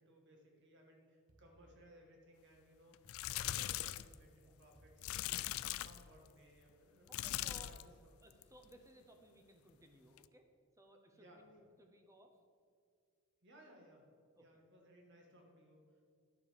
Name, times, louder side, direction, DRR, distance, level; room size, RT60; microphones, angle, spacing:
voice 1, 0.0-3.0 3.3-5.5 5.8-8.1 11.1-11.4 13.4-14.1 14.4-16.0, equal, 55° right, 1 dB, 1.8 m, -63 dB
sound 1, 1.3-2.4 3.1-4.1 4.8-5.9, right 1 dB, 75° right, 1.4 m, -68 dB
sound 2, 2.9-4.1 5.0-6.1 7.1-7.9 8.3-8.6 10.2-10.3, left 14 dB, 70° left, 0.3 m, -40 dB
voice 2, 7.1-7.8 8.2-10.5 10.8-12.3 14.3-14.7, right 1 dB, 15° right, 4 dB, 0.9 m, -61 dB
11.5 x 6.7 x 5.2 m, 2.1 s
head